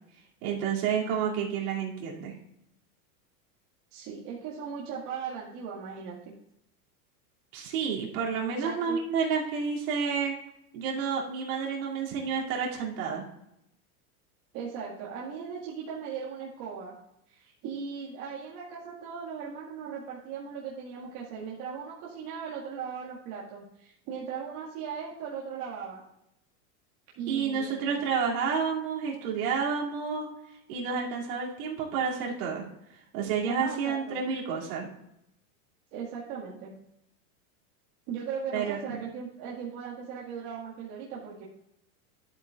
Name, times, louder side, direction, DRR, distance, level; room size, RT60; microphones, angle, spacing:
voice 1, 0.4-2.3 7.5-10.4 10.7-13.2 27.3-30.3 30.7-32.6 33.1-34.9 38.5-39.0, right 6 dB, 70° right, -4 dB, 2.8 m, -30 dB
voice 2, 3.9-6.2 8.6-9.0 14.5-17.0 17.3-26.0 27.2-27.9 33.5-34.2 35.9-36.7 38.1-41.5, right 6 dB, 55° right, -6 dB, 2.0 m, -38 dB
12.0 x 8.1 x 2.5 m, 0.79 s
supercardioid pair, 135°, 44 cm